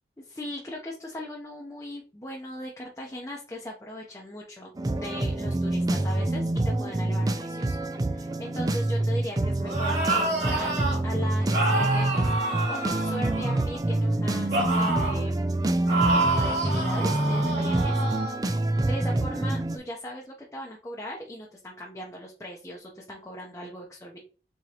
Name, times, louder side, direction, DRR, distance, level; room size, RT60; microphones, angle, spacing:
voice 1, 0.2-10.7 11.0-15.4 15.8-18.0 18.8-24.2, left 1 dB, 15° left, -2 dB, 0.7 m, -39 dB
sound 1, 4.8-19.8, right 1 dB, 20° right, 0.4 m, -26 dB
sound 2, 9.6-11.0 11.5-13.8 14.5-15.2 15.9-18.4, right 2 dB, 70° right, 2.7 m, -28 dB
4.9 x 3.7 x 2.9 m, 0.37 s
head